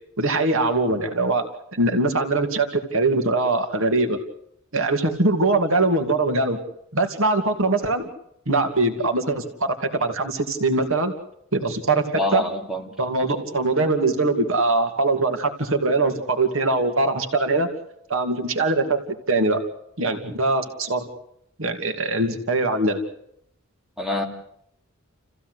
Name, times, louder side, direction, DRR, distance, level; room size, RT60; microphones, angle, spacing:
voice 1, 0.2-1.4 1.7-4.2 4.7-6.6 6.9-8.1 8.5-11.1 11.5-12.4 13.0-17.7 18.1-19.0 19.3-19.6 20.0-21.1 21.6-23.0, right 2 dB, 70° right, 6 dB, 2.6 m, -22 dB
voice 2, 12.2-12.9 24.0-24.2, left 2 dB, ahead, 1 dB, 2.7 m, -25 dB
29.0 x 16.0 x 8.1 m, 0.75 s
head